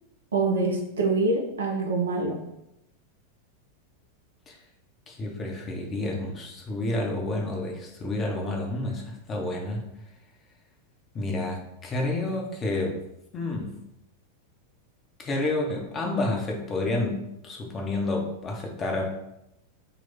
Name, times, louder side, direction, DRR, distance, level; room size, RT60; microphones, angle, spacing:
voice 1, 0.3-2.4, right 3 dB, 70° right, 0 dB, 0.8 m, -25 dB
voice 2, 5.1-9.8 11.1-13.0 13.3-13.8 15.2-19.2, left 2 dB, 25° left, 0 dB, 0.9 m, -29 dB
4.0 x 2.3 x 4.1 m, 0.86 s
figure-of-eight pair, 90°, 0 cm